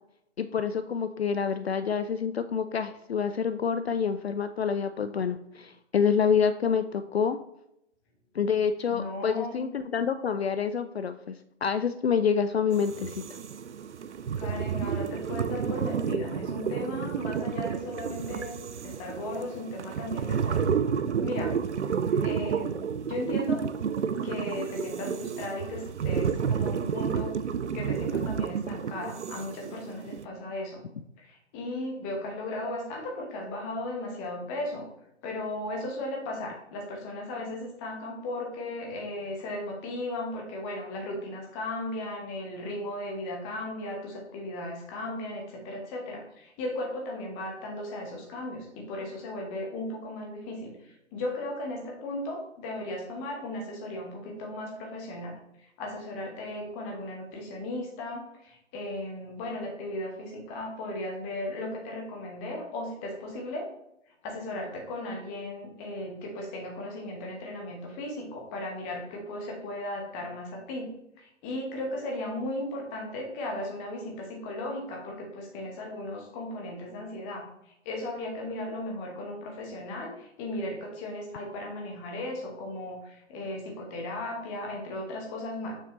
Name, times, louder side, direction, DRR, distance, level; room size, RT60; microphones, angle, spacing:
voice 1, 0.4-7.4 8.3-11.4 11.6-13.2, left 6 dB, 60° left, 10 dB, 0.4 m, -27 dB
voice 2, 8.9-9.6 14.4-20.8 21.2-21.6 22.2-23.7 24.2-27.3 27.7-30.8 31.2-34.9 35.2-55.3 55.8-63.7 64.2-70.9 71.2-77.5 77.8-85.7, left 1 dB, 15° left, 0 dB, 0.9 m, -36 dB
sound 1, 12.7-30.3, right 7 dB, 70° right, 0.5 m, -31 dB
6.8 x 5.6 x 3.0 m, 0.79 s
figure-of-eight pair, 135°, 36 cm